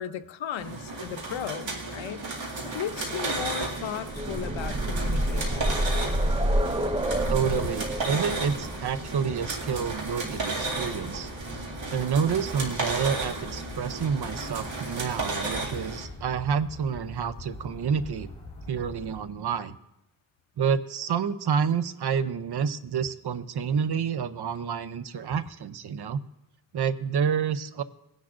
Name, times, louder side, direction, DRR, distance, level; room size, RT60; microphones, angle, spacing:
voice 1, 0.0-5.8, left 9 dB, 85° left, 11 dB, 0.7 m, -36 dB
sound 1, 0.6-16.0, right 2 dB, 85° right, 2.2 m, -34 dB
sound 2, 3.9-11.7 12.8-12.9 13.3-13.4, right 1 dB, 15° right, 0.3 m, -29 dB
sound 3, 6.0-19.2, left 2 dB, 15° left, 4.2 m, -43 dB
voice 2, 7.3-11.3 11.9-18.3 18.7-19.8 20.6-26.2 26.7-27.8, right 7 dB, 60° right, 13 dB, 0.6 m, -28 dB
20.5 x 10.5 x 2.5 m, 0.84 s
wide cardioid pair, 125°, 45 cm